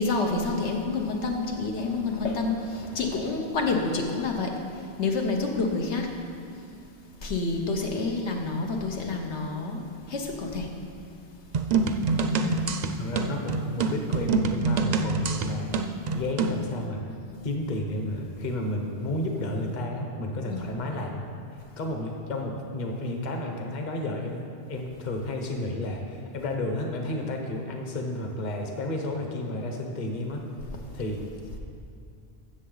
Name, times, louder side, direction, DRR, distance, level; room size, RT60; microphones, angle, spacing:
voice 1, 0.0-4.5 5.0-6.1 7.2-9.8 10.1-10.7 12.4-12.6 20.4-20.7, left 3 dB, 85° left, 1 dB, 1.3 m, -28 dB
sound 1, 11.5-16.6, right 4 dB, 55° right, 0.5 m, -26 dB
voice 2, 13.0-15.7 16.1-17.0 17.4-21.3 21.8-30.4 30.9-31.2, left 1 dB, 45° left, 2 dB, 1.1 m, -32 dB
15.0 x 6.8 x 3.9 m, 2.4 s
omnidirectional pair, 1.1 m